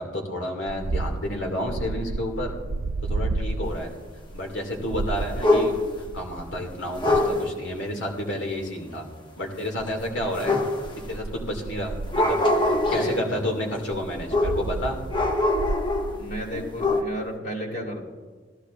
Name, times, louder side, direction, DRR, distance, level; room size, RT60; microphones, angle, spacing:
voice 1, 0.0-2.6 3.1-3.9 4.3-5.7 6.1-9.1 9.4-10.7 11.1-15.0, left 1 dB, 85° left, 1 dB, 2.2 m, -30 dB
sound 1, 0.7-7.6 9.8-13.1 13.8-17.4, right 3 dB, 50° right, 0.4 m, -33 dB
sound 2, 5.4-6.0 7.0-7.5 10.4-11.1 12.1-13.2 14.3-14.7 15.1-16.2 16.5-17.0, left 2 dB, 25° left, 0.7 m, -23 dB
voice 2, 12.9-13.2 16.2-18.1, equal, 55° left, -2 dB, 2.2 m, -33 dB
16.5 x 14.0 x 2.5 m, 1.4 s
head